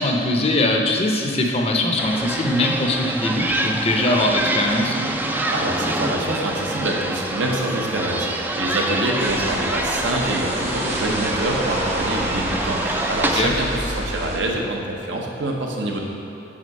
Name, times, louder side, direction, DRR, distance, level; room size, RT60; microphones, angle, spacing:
voice 1, 0.0-5.0 13.3-13.5, left 1 dB, 35° left, 2 dB, 0.6 m, -21 dB
sound 1, 2.0-13.4, right 1 dB, 10° right, 0.3 m, -26 dB
voice 2, 5.5-16.0, right 1 dB, 70° right, 0 dB, 0.9 m, -26 dB
sound 2, 9.2-14.4, right 1 dB, 40° right, 1.0 m, -28 dB
6.2 x 4.8 x 5.4 m, 2.7 s
head